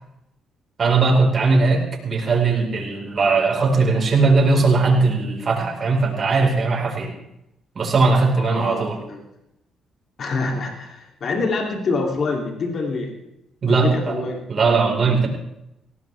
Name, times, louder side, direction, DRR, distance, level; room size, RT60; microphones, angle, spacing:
voice 1, 0.8-7.1 7.7-9.0 13.6-14.2 14.5-15.3, right 3 dB, 45° right, 0 dB, 4.9 m, -19 dB
voice 2, 8.4-9.2 10.2-13.1 13.7-14.4, left 3 dB, 55° left, 1 dB, 3.1 m, -26 dB
19.0 x 17.5 x 3.5 m, 0.84 s
cardioid pair, 90°, 0 cm